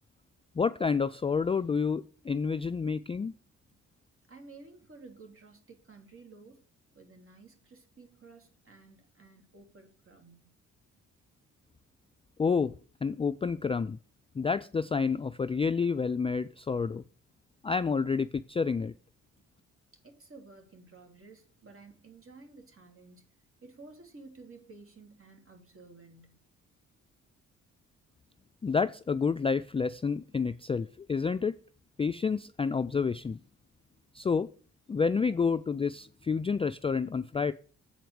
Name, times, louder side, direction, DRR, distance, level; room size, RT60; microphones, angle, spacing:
voice 1, 0.6-3.3 12.4-12.8 13.0-14.0 14.3-17.0 17.6-18.9 28.6-31.6 32.0-33.4 34.1-34.5 34.9-37.5, left 5 dB, 15° left, 12 dB, 0.3 m, -29 dB
voice 2, 4.3-6.6 6.9-10.5 19.4-19.5 20.0-23.2 23.6-26.4, right 3 dB, 40° right, 3 dB, 2.9 m, -53 dB
7.9 x 4.5 x 6.6 m, 0.40 s
hypercardioid pair, 45°, 34 cm